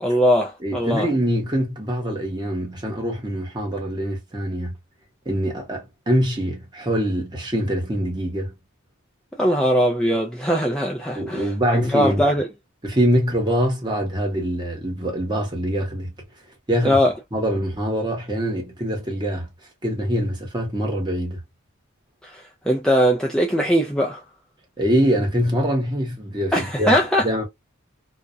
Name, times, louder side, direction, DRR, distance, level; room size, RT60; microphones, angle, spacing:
voice 1, 0.0-1.1 9.4-11.5 11.7-12.5 16.8-17.1 22.2-24.2 26.5-27.3, equal, 5° left, 0.3 m, -20 dB
voice 2, 0.6-4.8 5.3-8.6 11.1-12.2 12.8-16.1 16.7-17.0 17.3-19.5 19.8-21.4 24.8-27.0 27.2-27.4, equal, 20° right, 1.0 m, -24 dB
2.3 x 2.1 x 2.5 m
head